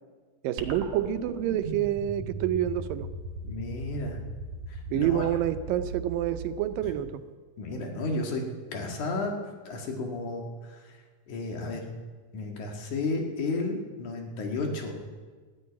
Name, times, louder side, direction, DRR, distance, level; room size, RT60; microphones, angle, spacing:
voice 1, 0.4-3.1 4.9-7.2, right 11 dB, 90° right, 11 dB, 2.4 m, -28 dB
sound 1, 0.6-7.1, right 3 dB, 60° right, 2.6 m, -39 dB
voice 2, 3.4-4.2 4.7-5.3 7.6-8.4 8.7-9.3 9.7-10.8 11.3-11.9 12.3-14.9, left 2 dB, 65° left, 2 dB, 3.3 m, -32 dB
13.5 x 10.0 x 9.5 m, 1.4 s
omnidirectional pair, 3.9 m